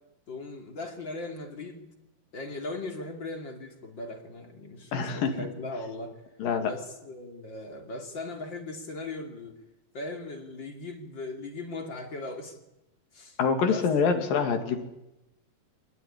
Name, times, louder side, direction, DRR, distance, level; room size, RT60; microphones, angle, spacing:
voice 1, 0.3-1.9 2.3-6.2 6.6-9.6 9.9-12.6 13.1-13.9, left 2 dB, 35° left, 4 dB, 3.0 m, -38 dB
voice 2, 4.9-5.5 6.4-6.7 13.4-14.8, left 5 dB, 75° left, 6 dB, 4.2 m, -25 dB
25.0 x 19.0 x 9.9 m, 0.91 s
omnidirectional pair, 4.0 m